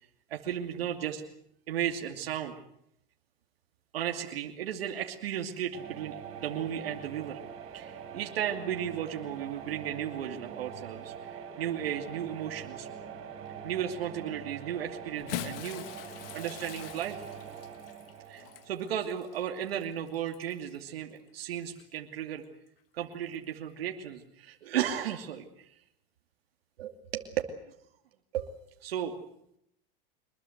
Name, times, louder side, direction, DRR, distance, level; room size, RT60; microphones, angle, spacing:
voice 1, 0.3-1.2 1.7-2.5 3.9-7.4 7.7-12.9 13.6-15.9 16.3-17.3 18.3-22.4 22.9-25.7 26.8-27.3 28.3-28.5 28.8-29.1, right 10 dB, 90° right, 3 dB, 2.6 m, -35 dB
sound 1, 5.7-19.6, right 7 dB, 45° right, 7.1 m, -44 dB
Bathtub (filling or washing) / Splash splatter, 15.1-20.8 21.7-21.8 23.3-23.4, left 13 dB, 70° left, 1.8 m, -43 dB
25.0 x 21.5 x 7.9 m, 0.75 s
supercardioid pair, 115°, 29 cm